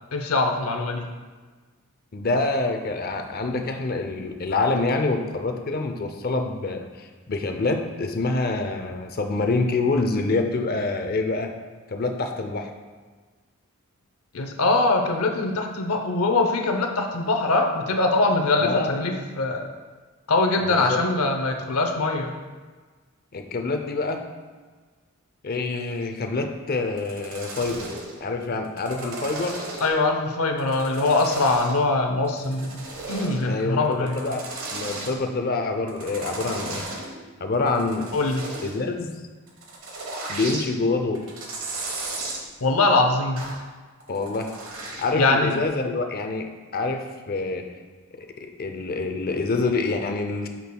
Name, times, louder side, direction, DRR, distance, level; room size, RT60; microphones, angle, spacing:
voice 1, 0.1-1.1 14.3-19.7 20.3-22.3 29.8-32.8 33.1-34.2 38.1-38.5 42.6-43.4 45.1-45.6, left 2 dB, 90° left, 4 dB, 0.7 m, -22 dB
voice 2, 2.1-11.5 11.9-12.7 18.6-18.9 20.6-21.0 23.3-24.2 25.4-27.9 28.2-29.6 33.5-34.4 34.7-36.8 37.4-38.1 38.6-39.1 40.3-41.2 44.1-44.5 45.0-47.6 48.2-50.5, left 3 dB, 45° left, 5 dB, 0.6 m, -26 dB
sound 1, 27.0-28.1 28.6-30.1 30.6-31.8 32.2-33.5 33.9-35.1 35.9-37.1 37.5-38.8 39.5-40.7 41.1-42.4 43.4-43.6 44.0-45.1 45.5-45.6, right 2 dB, 75° right, 1.2 m, -35 dB
8.4 x 6.1 x 2.3 m, 1.4 s
head